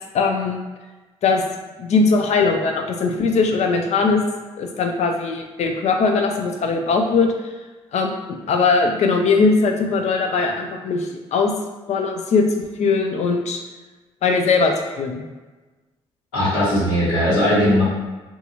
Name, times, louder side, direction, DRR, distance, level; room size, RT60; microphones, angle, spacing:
voice 1, 0.1-0.6 1.2-1.4 1.8-4.2 4.6-7.3 7.9-8.1 8.5-11.5 11.9-13.6 14.2-15.2, left 4 dB, 50° left, 3 dB, 0.5 m, -20 dB
voice 2, 16.3-17.8, equal, 75° left, -12 dB, 1.4 m, -18 dB
2.7 x 2.4 x 2.6 m, 1.2 s
figure-of-eight pair, 40°, 15 cm